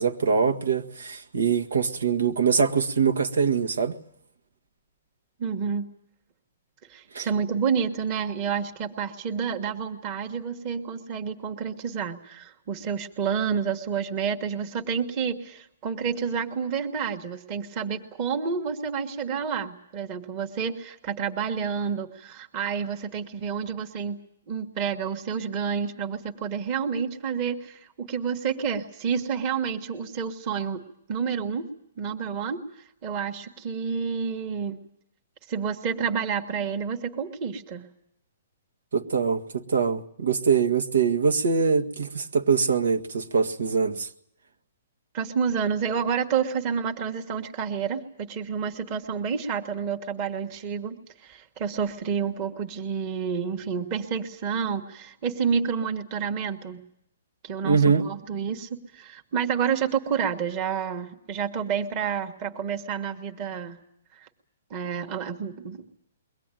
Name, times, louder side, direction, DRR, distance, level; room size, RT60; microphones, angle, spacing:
voice 1, 0.0-4.0 7.1-7.3 38.9-44.1 57.6-58.0, right 5 dB, 90° right, 1.7 m, -23 dB
voice 2, 5.4-5.9 6.9-24.2 24.5-30.8 31.1-31.6 32.0-32.6 33.0-34.8 35.5-37.9 45.1-56.8 57.4-63.8 64.1-64.3 64.7-65.8, right 6 dB, 20° right, 1.4 m, -29 dB
22.5 x 18.0 x 9.1 m
hypercardioid pair, 180°, 0 cm